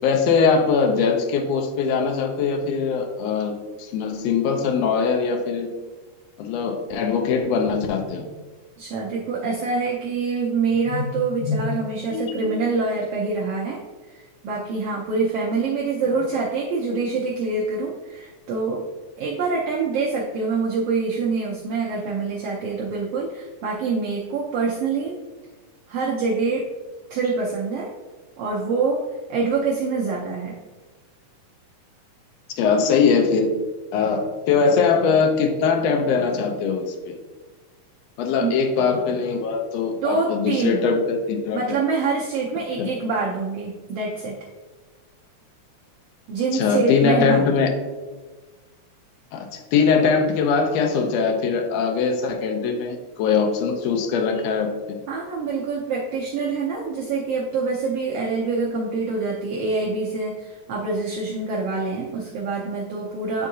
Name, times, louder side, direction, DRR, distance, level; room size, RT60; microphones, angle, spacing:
voice 1, 0.0-3.5 3.8-5.7 6.4-8.2 10.9-11.1 11.5-11.7 12.1-12.4 32.6-33.5 33.9-37.2 38.2-41.8 42.8-42.9 46.5-47.7 49.3-55.0, left 5 dB, 80° left, 4 dB, 1.4 m, -21 dB
voice 2, 8.8-13.8 14.1-18.8 19.2-25.2 25.9-26.7 27.1-27.9 28.4-30.6 38.4-38.5 40.0-40.8 41.5-44.4 46.3-47.4 54.3-54.5 55.1-63.5, right 4 dB, 85° right, -3 dB, 1.3 m, -25 dB
9.6 x 3.6 x 2.7 m, 1.3 s
omnidirectional pair, 3.6 m